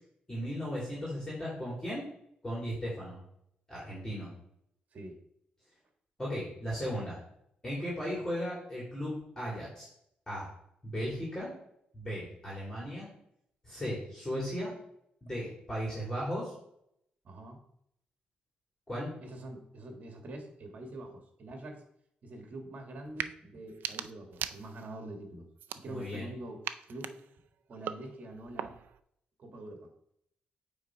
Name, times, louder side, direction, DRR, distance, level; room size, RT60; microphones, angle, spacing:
voice 1, 0.3-2.0 2.4-3.2 3.7-4.3 6.2-7.2 7.6-9.9 10.3-10.5 10.8-11.5 11.9-13.1 13.6-14.7 15.2-16.5 18.9-19.1 25.9-26.3, equal, 15° left, -7 dB, 3.1 m, -36 dB
voice 2, 17.2-17.6 19.2-21.8 22.2-25.5 25.7-26.6 26.9-27.2 27.7-28.8 29.4-29.9, right 1 dB, 50° right, 3 dB, 1.8 m, -45 dB
sound 1, 23.1-23.3 23.7-25.0 25.6-26.3 26.6-29.0, right 9 dB, 75° right, 0.4 m, -41 dB
8.1 x 3.8 x 4.6 m, 0.73 s
cardioid pair, 115°, 3 cm